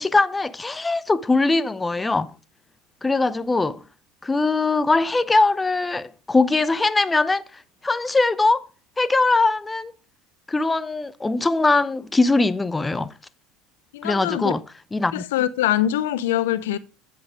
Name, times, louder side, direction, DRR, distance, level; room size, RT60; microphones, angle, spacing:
voice 1, 0.0-2.3 3.0-3.8 4.2-8.7 9.0-9.9 10.5-13.1 14.0-14.6 14.9-15.2, left 3 dB, 15° left, 0.6 m, -21 dB
voice 2, 13.9-14.5 15.1-16.8, left 12 dB, 75° left, 0.6 m, -23 dB
8.7 x 8.1 x 4.7 m
hypercardioid pair, 75°, 0 cm